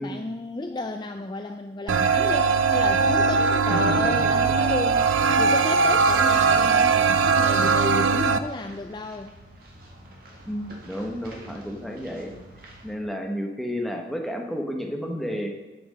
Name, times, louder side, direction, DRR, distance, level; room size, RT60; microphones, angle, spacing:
voice 1, 0.0-9.3, left 3 dB, 25° left, 5 dB, 0.3 m, -32 dB
sound 1, 1.9-8.4, right 5 dB, 90° right, 0.5 m, -20 dB
voice 2, 3.7-4.7 5.3-5.5 7.6-7.8 10.5-12.3 12.8-15.5, equal, ahead, 1 dB, 0.9 m, -32 dB
sound 2, 7.4-12.9, right 1 dB, 50° right, 1.8 m, -47 dB
8.1 x 6.0 x 6.3 m, 1.2 s
head